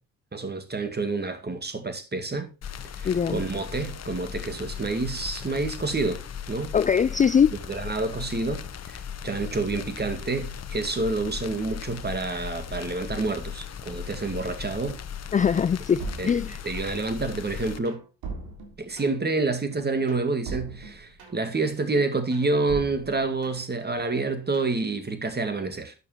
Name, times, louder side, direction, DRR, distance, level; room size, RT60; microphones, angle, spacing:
voice 1, 0.3-2.5 3.0-6.7 7.5-15.0 16.2-16.4 16.6-18.0 18.8-25.9, right 3 dB, 25° right, 2.2 m, -28 dB
sound 1, 2.6-17.8, left 8 dB, 40° left, 1.1 m, -37 dB
voice 2, 3.0-3.4 6.7-7.5 15.3-16.6, left 7 dB, 20° left, 0.5 m, -22 dB
sound 2, 16.0-17.1 17.5-19.4 19.7-21.6 21.9-23.8 24.2-24.8, right 4 dB, 60° right, 3.6 m, -40 dB
12.0 x 8.4 x 3.1 m
hypercardioid pair, 50°, 41 cm